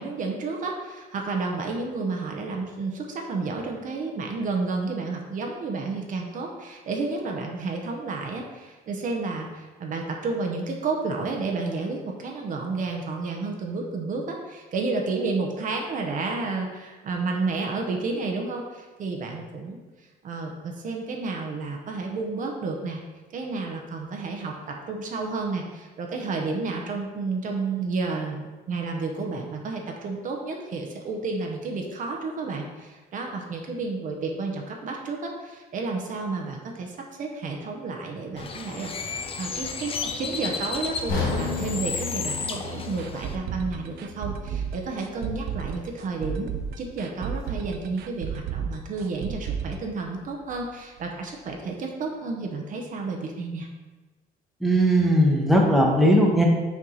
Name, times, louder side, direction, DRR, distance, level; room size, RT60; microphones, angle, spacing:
voice 1, 0.0-19.8 20.2-23.0 23.3-46.5 46.8-53.7, right 3 dB, 50° right, 1 dB, 0.9 m, -31 dB
Bird, 38.4-43.4, left 5 dB, 35° left, 0.6 m, -33 dB
sound 1, 41.1-45.1 45.5-45.7 46.2-46.3, left 5 dB, 60° left, 1.4 m, -33 dB
sound 2, 43.0-50.7 51.0-51.1 51.5-51.6, right 7 dB, 70° right, 0.5 m, -33 dB
voice 2, 54.6-56.4, equal, ahead, -2 dB, 1.1 m, -18 dB
6.0 x 4.4 x 4.0 m, 1.3 s
cardioid pair, 110°, 17 cm